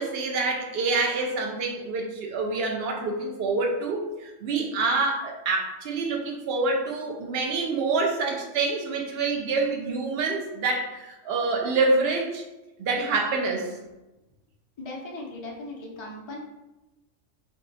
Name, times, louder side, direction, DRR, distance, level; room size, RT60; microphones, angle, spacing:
voice 1, 0.0-12.4 12.8-13.8, right 3 dB, 60° right, 1 dB, 0.8 m, -26 dB
voice 2, 14.8-16.4, left 2 dB, 45° left, -2 dB, 0.3 m, -38 dB
2.7 x 2.1 x 3.9 m, 1.0 s
omnidirectional pair, 1.3 m